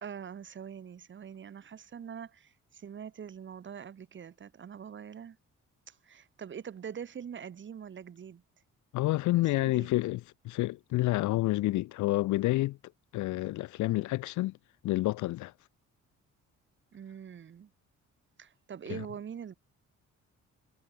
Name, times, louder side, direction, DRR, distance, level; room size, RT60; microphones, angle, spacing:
voice 1, 0.0-5.4 5.9-8.4 9.7-9.9 16.9-17.7 18.4-19.5, right 8 dB, 40° right, 0.9 m, -44 dB
voice 2, 8.9-12.8 13.1-14.6 14.8-15.5 18.9-19.0, left 18 dB, 75° left, 0.5 m, -29 dB
cardioid pair, 90°, 30 cm